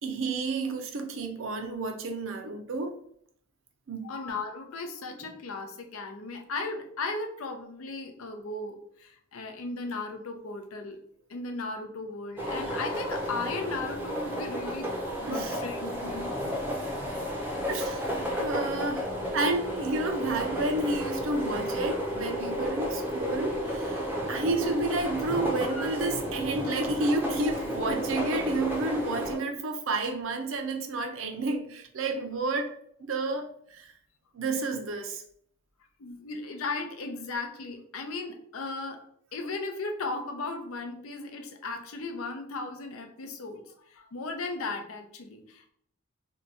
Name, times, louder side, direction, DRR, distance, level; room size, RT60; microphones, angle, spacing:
voice 1, 0.0-2.9 3.9-4.1 15.3-15.6 17.7-19.1 19.3-32.7 33.0-33.9 34.3-35.2, right 2 dB, 65° right, 5 dB, 0.5 m, -31 dB
voice 2, 4.0-11.0 11.3-16.4 36.0-39.0 39.3-45.7, left 3 dB, 80° left, 5 dB, 0.6 m, -36 dB
sound 1, 12.4-29.4, equal, 10° right, 0.6 m, -32 dB
2.7 x 2.3 x 4.0 m, 0.66 s
head